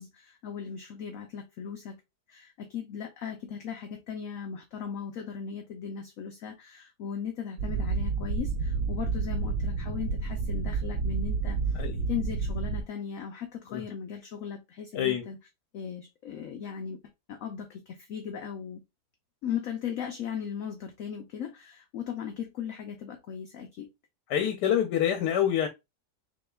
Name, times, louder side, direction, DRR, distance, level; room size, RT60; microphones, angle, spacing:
voice 1, 0.0-2.0 2.3-11.8 12.1-15.4 15.7-17.0 17.3-18.8 19.4-23.9, left 7 dB, 65° left, 0.9 m, -37 dB
sound 1, 7.6-12.8, right 4 dB, 80° right, 1.2 m, -30 dB
voice 2, 24.3-25.7, left 10 dB, 85° left, 1.2 m, -26 dB
6.1 x 2.8 x 2.2 m
omnidirectional pair, 1.7 m